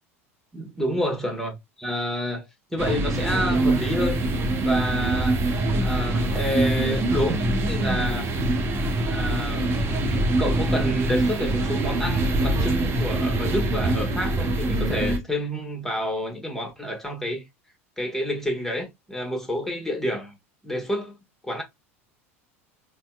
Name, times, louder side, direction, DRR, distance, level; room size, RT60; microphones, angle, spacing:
voice 1, 0.5-2.5 2.7-4.2 4.6-5.4 5.8-7.4 7.7-8.3 9.1-10.0 10.4-17.5 18.0-20.4 20.6-21.2 21.4-21.6, equal, 5° left, 1.2 m, -29 dB
sound 1, 2.8-15.2, right 1 dB, 35° right, 0.7 m, -24 dB
4.2 x 2.2 x 2.3 m
figure-of-eight pair, 75°, 8 cm